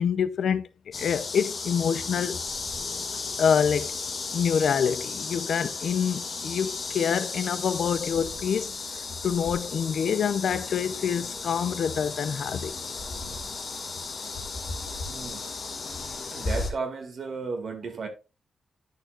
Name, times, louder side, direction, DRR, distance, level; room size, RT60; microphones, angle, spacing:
voice 1, 0.0-2.4 3.4-8.7 9.2-12.7, left 7 dB, 75° left, 0.6 m, -26 dB
sound 1, 0.9-16.7, left 4 dB, 45° left, 2.1 m, -34 dB
voice 2, 15.1-15.4 16.3-18.1, right 4 dB, 60° right, 2.1 m, -34 dB
11.0 x 6.5 x 2.4 m
wide cardioid pair, 140°, 0 cm